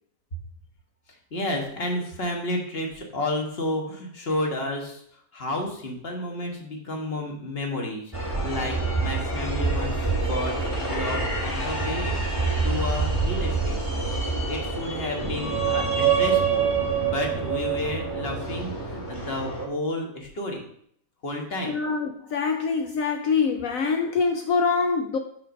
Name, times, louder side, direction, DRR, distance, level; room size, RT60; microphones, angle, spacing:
voice 1, 1.3-5.0 5.3-10.5 10.9-12.2 12.6-14.1 14.5-16.7 17.0-20.6 21.2-21.8, left 1 dB, 35° left, 1.4 m, -31 dB
sound 1, 8.1-19.7, right 4 dB, 20° left, 1.5 m, -26 dB
sound 2, 9.4-14.1, right 1 dB, 15° right, 0.8 m, -42 dB
voice 2, 21.7-25.2, left 5 dB, 70° left, 0.9 m, -24 dB
5.8 x 5.4 x 5.1 m
omnidirectional pair, 1.8 m